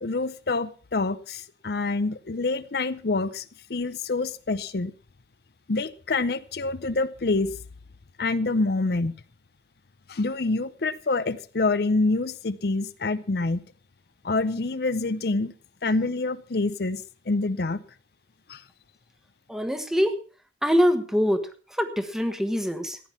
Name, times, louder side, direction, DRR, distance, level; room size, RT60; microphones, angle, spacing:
voice 1, 0.0-4.9 5.7-7.5 8.2-9.1 10.1-13.6 14.2-15.5 15.8-17.8 18.5-18.6, left 3 dB, 60° left, 13 dB, 0.7 m, -26 dB
voice 2, 19.5-20.2 20.6-23.0, equal, 5° right, 8 dB, 1.4 m, -24 dB
15.0 x 10.5 x 5.8 m, 0.39 s
head